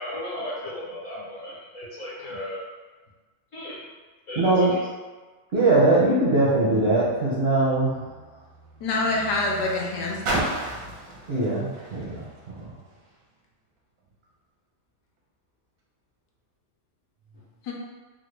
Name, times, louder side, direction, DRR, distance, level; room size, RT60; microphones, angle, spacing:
voice 1, 0.0-2.6 3.5-3.8 4.3-4.8 17.3-17.4, left 1 dB, 55° left, -8 dB, 1.0 m, -35 dB
voice 2, 4.4-4.7 5.5-8.0 11.3-12.7, right 2 dB, 65° right, -9 dB, 0.6 m, -21 dB
Car, 7.0-13.2 14.0-14.1, right 2 dB, 85° right, 1.3 m, -35 dB
voice 3, 8.8-10.6 17.6-17.7, left 2 dB, 75° left, -2 dB, 1.2 m, -26 dB
3.6 x 2.1 x 3.2 m, 1.3 s
omnidirectional pair, 1.9 m